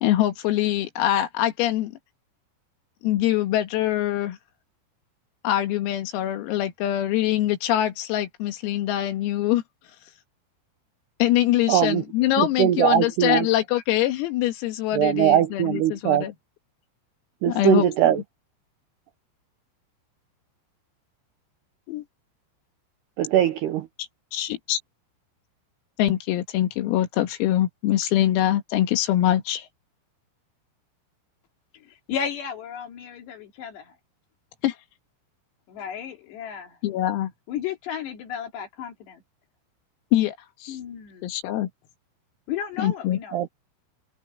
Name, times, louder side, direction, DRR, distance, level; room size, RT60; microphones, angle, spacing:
voice 1, 0.0-2.0 3.0-4.4 5.4-9.6 11.2-16.3 17.5-18.1 21.9-22.0 24.3-24.8 26.0-29.7 34.6-34.8 36.8-37.3 40.1-40.4 40.6-40.8 41.2-41.7 42.8-43.2, left 13 dB, 85° left, 4.6 m, -24 dB
voice 2, 11.7-12.0 12.4-13.5 14.9-16.2 17.4-18.2 23.2-23.9 43.3-43.5, right 11 dB, 80° right, 2.4 m, -21 dB
voice 3, 31.7-33.9 35.7-36.8 37.5-39.2 40.7-41.3 42.5-43.4, left 8 dB, 60° left, 4.5 m, -34 dB
omnidirectional pair, 6.0 m